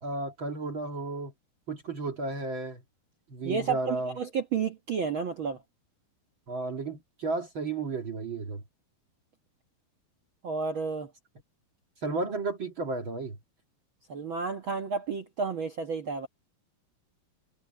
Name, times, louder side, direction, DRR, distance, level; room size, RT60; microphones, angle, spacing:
voice 1, 0.0-1.3 1.7-2.8 3.3-4.1 6.5-8.6 12.0-13.4, right 3 dB, 40° right, 2.1 m, -33 dB
voice 2, 3.4-5.6 10.4-11.1 14.1-16.3, right 5 dB, 80° right, 1.1 m, -31 dB
omnidirectional pair, 4.4 m